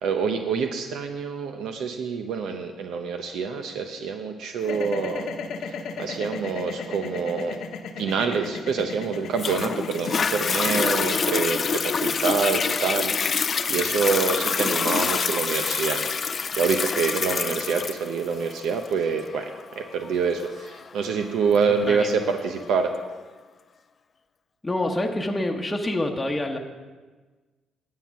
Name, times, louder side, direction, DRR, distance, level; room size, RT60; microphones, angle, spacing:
voice 1, 0.0-5.3 5.6-7.6 8.0-16.0 16.3-19.5 19.8-22.9, right 5 dB, 80° right, 6 dB, 0.7 m, -26 dB
sound 1, 4.6-14.8, left 5 dB, 75° left, 1.0 m, -36 dB
Toilet flush, 9.4-22.4 23.0-23.1, left 5 dB, 45° left, 0.4 m, -26 dB
voice 2, 24.6-26.6, left 1 dB, 15° left, 1 dB, 1.0 m, -26 dB
9.7 x 7.5 x 5.8 m, 1.3 s
cardioid pair, 90°, 0 cm